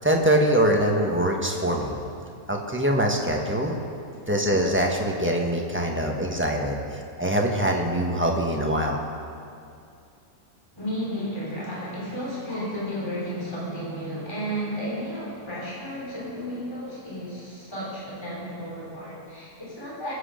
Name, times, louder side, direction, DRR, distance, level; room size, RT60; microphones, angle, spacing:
voice 1, 0.0-1.9 2.5-3.8 4.3-9.0, right 1 dB, 10° right, 0 dB, 1.2 m, -23 dB
voice 2, 10.7-20.1, equal, 15° left, -6 dB, 3.4 m, -33 dB
21.0 x 8.4 x 5.1 m, 2.5 s
omnidirectional pair, 1.7 m